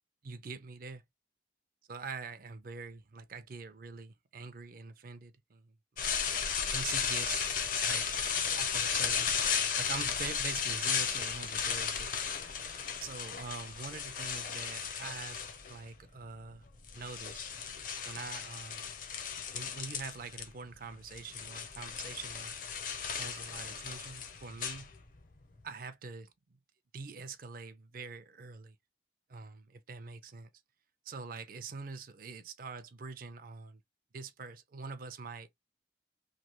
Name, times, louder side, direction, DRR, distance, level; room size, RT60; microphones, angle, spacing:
voice 1, 0.2-1.0 1.9-5.7 6.7-7.6 7.8-8.1 8.3-9.4 9.8-12.2 13.0-16.7 16.9-17.5 18.0-18.9 19.5-22.6 23.2-24.9 25.6-26.3 26.9-28.8 29.3-30.5 31.1-33.8 34.1-35.5, right 4 dB, 50° right, 0.4 m, -44 dB
sound 1, 6.0-15.9 16.7-20.5 20.7-25.3, left 7 dB, 50° left, 0.6 m, -35 dB
3.2 x 2.2 x 2.9 m
head